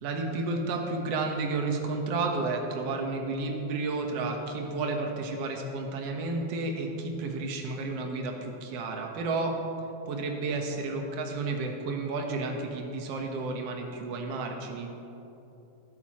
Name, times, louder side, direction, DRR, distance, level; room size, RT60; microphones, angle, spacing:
voice 1, 0.0-9.6 10.1-15.0, right 3 dB, 60° right, 2 dB, 2.1 m, -31 dB
21.0 x 10.5 x 3.1 m, 3.0 s
omnidirectional pair, 3.4 m